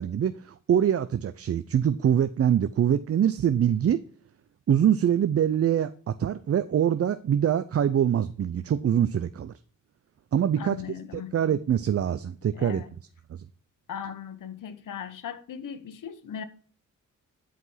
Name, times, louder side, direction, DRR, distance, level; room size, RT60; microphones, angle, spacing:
voice 1, 0.0-4.0 4.7-9.5 10.3-10.8 11.3-12.8, right 9 dB, 50° right, 0.6 m, -24 dB
voice 2, 10.6-11.3 12.5-12.9 13.9-16.4, left 8 dB, 80° left, 1.2 m, -38 dB
11.0 x 5.1 x 5.7 m
cardioid pair, 100°, 31 cm